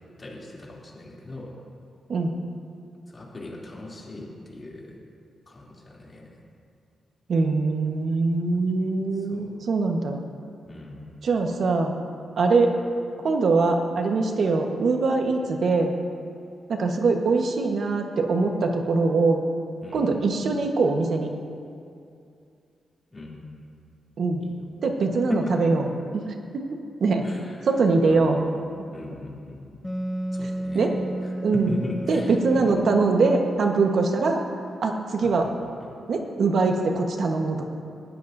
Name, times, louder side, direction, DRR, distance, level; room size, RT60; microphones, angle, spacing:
voice 1, 0.2-1.5 3.1-4.9 5.5-6.3 9.1-9.5 10.6-11.2 19.8-20.1 23.1-23.3 24.4-24.6 25.3-25.4 27.2-27.7 28.1-28.2 28.9-29.9 30.3-30.9 31.5-32.8 35.2-35.9, left 2 dB, 30° left, -4 dB, 2.9 m, -39 dB
voice 2, 7.3-10.2 11.2-11.9 12.4-12.7 13.2-15.9 16.7-19.4 19.9-21.3 24.2-24.4 24.8-25.8 26.1-27.2 27.6-28.4 30.4-30.9 31.4-31.7 32.1-34.4 34.8-35.5 36.1-37.6, right 3 dB, 65° right, 3 dB, 1.3 m, -23 dB
Wind instrument woodwind instrument, 29.8-35.2, right 1 dB, 10° left, 0.6 m, -33 dB
19.5 x 13.5 x 2.7 m, 2.4 s
wide cardioid pair, 120°, 0 cm